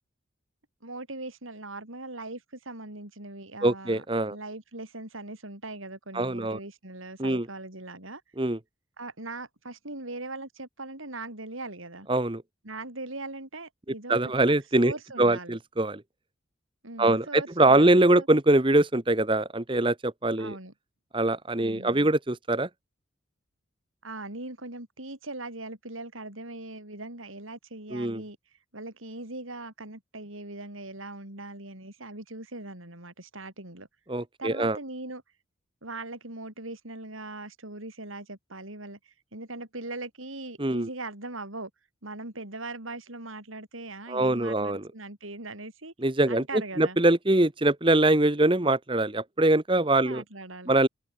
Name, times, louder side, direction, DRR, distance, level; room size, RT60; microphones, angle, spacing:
voice 1, 0.8-4.0 4.3-8.2 9.0-12.1 12.6-15.6 16.8-18.3 20.4-20.7 21.6-22.1 24.0-28.4 28.7-33.9 34.4-35.2 35.8-41.7 42.0-45.9 46.3-47.0 50.0-50.7, right 2 dB, 85° right, 7.1 m, -40 dB
voice 2, 3.6-4.4 6.1-6.6 7.2-7.5 8.4-8.6 12.1-12.4 14.1-16.0 17.0-20.6 21.1-22.7 27.9-28.2 34.1-34.8 40.6-40.9 44.1-44.9 46.0-46.4 46.8-50.2 50.7-50.9, right 2 dB, 25° right, 1.1 m, -23 dB
head